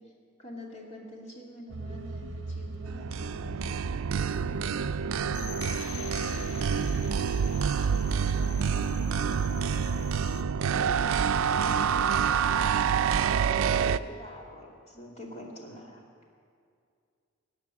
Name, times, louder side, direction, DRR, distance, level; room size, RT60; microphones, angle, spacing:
voice 1, 0.4-3.8 7.9-9.0 14.2-16.0, left 1 dB, 35° left, -2 dB, 2.6 m, -45 dB
sound 1, 1.7-7.1, right 2 dB, 65° right, 0.8 m, -39 dB
sound 2, 2.9-14.0, right 7 dB, 90° right, 0.4 m, -27 dB
voice 2, 4.3-5.0 10.1-13.4 13.9-14.2, right 1 dB, 5° left, 0 dB, 1.4 m, -47 dB
sound 3, 5.3-10.4, left 9 dB, 85° left, 0.9 m, -45 dB
18.0 x 6.6 x 9.8 m, 2.3 s
head